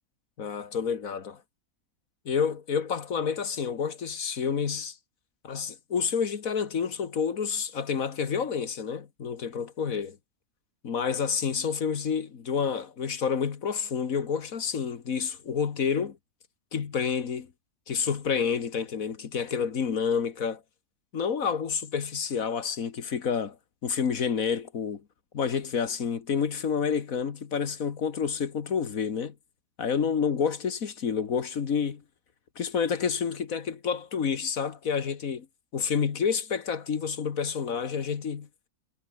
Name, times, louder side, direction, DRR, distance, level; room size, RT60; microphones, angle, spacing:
voice 1, 0.4-1.4 2.3-5.0 5.4-10.1 10.8-16.2 16.7-17.5 17.9-20.6 21.1-23.6 23.8-25.0 25.3-29.4 29.8-32.0 32.6-35.5 35.7-38.5, left 6 dB, 65° left, 1.9 m, -29 dB
omnidirectional pair, 1.6 m